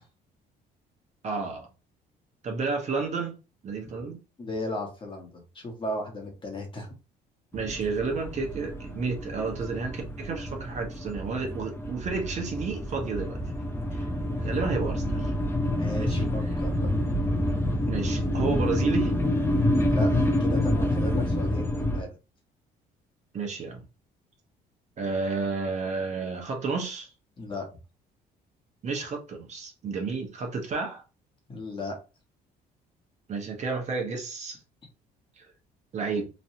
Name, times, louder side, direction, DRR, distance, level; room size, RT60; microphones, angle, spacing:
voice 1, 1.2-1.7 2.4-3.4 3.6-4.2 7.5-13.4 13.9-14.1 14.4-15.3 16.0-16.3 17.9-19.1 23.3-23.8 25.0-27.1 28.8-31.0 33.3-34.6 35.4-35.5 35.9-36.3, right 4 dB, 45° right, 1.0 m, -31 dB
voice 2, 4.4-6.9 15.7-16.9 19.8-22.1 27.4-27.7 31.5-32.0, left 1 dB, 30° left, 1.3 m, -35 dB
sound 1, 7.5-22.0, left 1 dB, 15° left, 0.7 m, -28 dB
3.1 x 2.6 x 2.7 m
cardioid pair, 110°, 17 cm